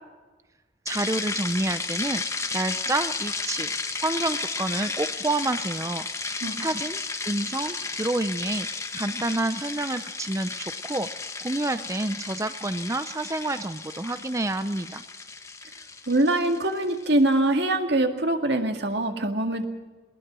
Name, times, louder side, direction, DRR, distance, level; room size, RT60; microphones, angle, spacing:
sound 1, 0.9-17.1, left 4 dB, 15° left, 1.2 m, -33 dB
voice 1, 0.9-2.2 2.5-3.7 4.0-6.1 6.6-8.7 8.9-11.1 11.4-15.0, right 2 dB, 15° right, 10 dB, 0.5 m, -28 dB
voice 2, 6.4-6.7 16.1-19.6, right 1 dB, 65° right, 5 dB, 2.1 m, -23 dB
21.0 x 20.0 x 6.2 m, 1.3 s
head